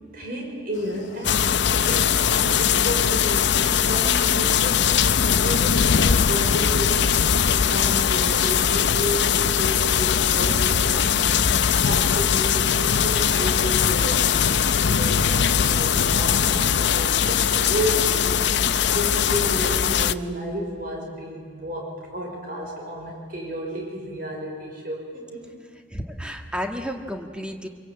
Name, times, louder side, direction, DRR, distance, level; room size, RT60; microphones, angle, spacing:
voice 1, 0.1-11.3 11.8-25.5, equal, 50° right, 0 dB, 5.1 m, -32 dB
sound 1, 0.7-19.9, left 4 dB, 40° left, 2.1 m, -42 dB
sound 2, 1.2-20.1, left 8 dB, 65° left, 0.6 m, -20 dB
voice 2, 25.9-27.7, equal, 5° right, 4 dB, 1.6 m, -32 dB
25.5 x 23.0 x 8.6 m, 2.2 s
head